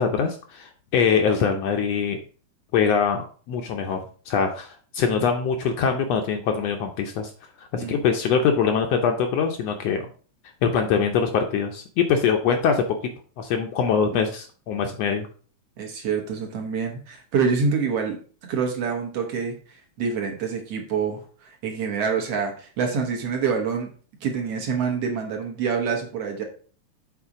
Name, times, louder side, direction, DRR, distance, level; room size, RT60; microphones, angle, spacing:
voice 1, 0.0-2.2 2.7-4.0 4.3-7.3 7.7-10.1 10.6-12.8 13.4-15.3, left 6 dB, 75° left, 4 dB, 1.6 m, -23 dB
voice 2, 15.8-18.2 18.5-23.9 24.2-26.4, right 5 dB, 60° right, 2 dB, 2.0 m, -26 dB
7.1 x 4.2 x 4.9 m, 0.41 s
omnidirectional pair, 3.4 m